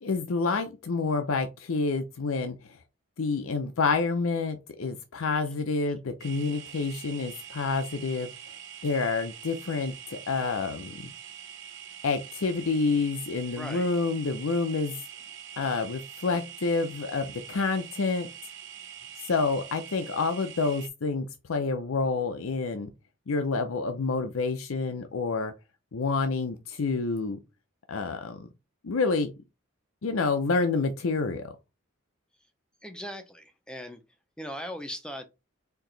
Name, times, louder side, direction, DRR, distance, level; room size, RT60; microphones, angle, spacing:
voice 1, 0.0-2.8 3.2-8.6 8.8-11.1 12.0-15.0 15.6-18.3 19.3-22.9 23.3-25.5 25.9-27.4 27.9-28.5 28.8-29.3 30.0-31.5, left 4 dB, 90° left, 0.6 m, -28 dB
sound 1, 6.2-20.9, right 10 dB, 65° right, 0.7 m, -44 dB
voice 2, 13.6-13.9 32.8-34.0 34.4-35.3, equal, 5° left, 0.5 m, -39 dB
4.6 x 2.9 x 3.8 m
head